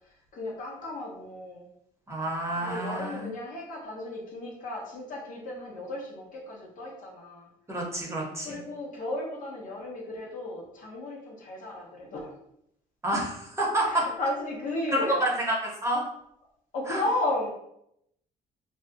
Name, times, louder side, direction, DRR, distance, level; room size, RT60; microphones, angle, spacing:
voice 1, 0.3-1.7 2.5-7.5 8.4-12.3 13.8-15.2 16.7-17.5, left 2 dB, 60° left, -1 dB, 0.8 m, -34 dB
voice 2, 2.1-3.3 7.7-8.6 13.0-14.0 14.9-15.5 15.8-16.1 16.9-17.0, right 1 dB, 20° right, -3 dB, 0.8 m, -28 dB
2.6 x 2.2 x 2.5 m, 0.76 s
cardioid pair, 105°, 15 cm